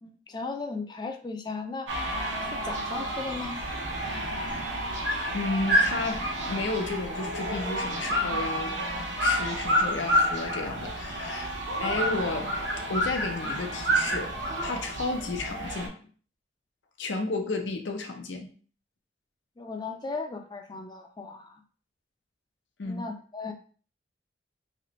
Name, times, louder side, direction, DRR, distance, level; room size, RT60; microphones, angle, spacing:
voice 1, 0.0-1.9 2.4-3.6 19.6-21.6 22.8-23.5, left 3 dB, 25° left, 4 dB, 0.4 m, -36 dB
sound 1, 1.9-15.9, equal, 85° right, 1.0 m, -29 dB
voice 2, 5.3-8.8 9.2-11.5 11.8-12.5 12.9-14.3 14.6-15.9 17.0-18.5 22.8-23.1, left 3 dB, 80° left, 4 dB, 0.6 m, -32 dB
3.0 x 2.9 x 3.0 m, 0.42 s
head